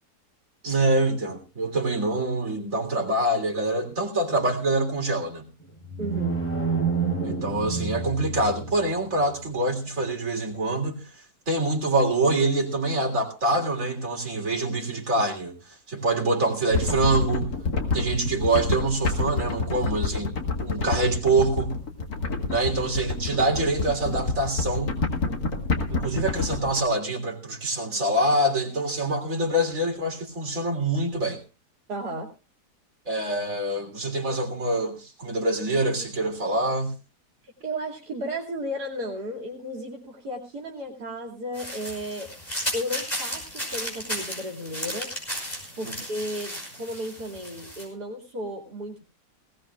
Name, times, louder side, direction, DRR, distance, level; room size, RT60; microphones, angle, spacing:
voice 1, 0.6-5.4 7.2-17.5 17.9-21.7 22.5-24.9 25.9-31.4 33.1-37.0 45.8-46.0, right 2 dB, 55° right, 3.8 m, -25 dB
sound 1, 5.6-8.9, right 4 dB, 5° left, 5.6 m, -28 dB
voice 2, 6.0-6.4 31.9-32.3 37.6-42.3 42.7-45.1 45.8-49.0, equal, 70° right, 3.0 m, -34 dB
sound 2, 16.7-26.8, left 3 dB, 65° left, 2.5 m, -28 dB
sound 3, 41.5-47.8, equal, 25° left, 6.2 m, -34 dB
19.5 x 18.0 x 2.4 m
omnidirectional pair, 1.8 m